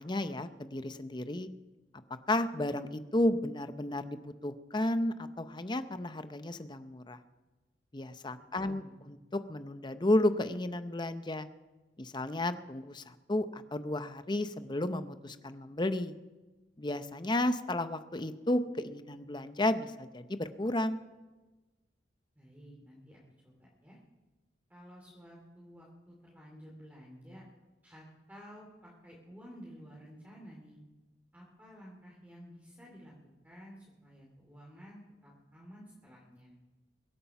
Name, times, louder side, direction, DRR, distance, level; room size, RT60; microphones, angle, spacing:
voice 1, 0.0-1.5 2.3-7.2 7.9-11.5 12.0-16.1 16.8-21.0, left 1 dB, 25° left, 11 dB, 0.7 m, -32 dB
voice 2, 8.6-9.0 22.4-24.0 24.7-27.4 27.8-30.8 31.3-33.1 33.4-36.5, equal, 10° right, -3 dB, 2.5 m, -52 dB
22.5 x 8.5 x 5.9 m, 1.2 s
head